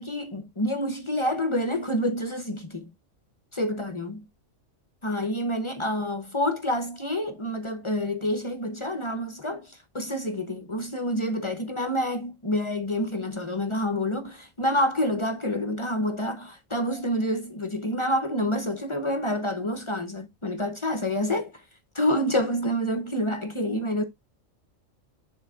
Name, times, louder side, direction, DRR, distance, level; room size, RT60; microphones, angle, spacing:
voice 1, 0.0-2.9 3.5-4.3 5.0-21.5 21.9-24.0, left 1 dB, 30° left, 0.7 m, -28 dB
9.1 x 3.8 x 3.7 m
omnidirectional pair, 1.3 m